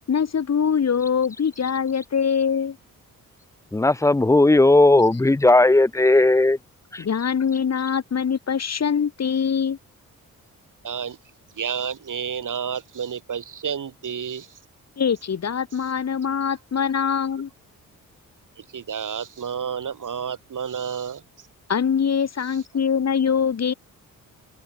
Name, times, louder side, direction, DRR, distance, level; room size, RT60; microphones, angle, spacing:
voice 1, 0.1-2.8 7.0-9.8 15.0-17.5 21.7-23.7, left 7 dB, 50° left, 1.5 m, -23 dB
voice 2, 3.7-6.6 6.9-7.0, left 2 dB, 10° left, 0.4 m, -16 dB
voice 3, 10.8-11.2 11.6-14.5 18.6-21.2, right 7 dB, 65° right, 5.9 m, -30 dB
cardioid pair, 70°, 34 cm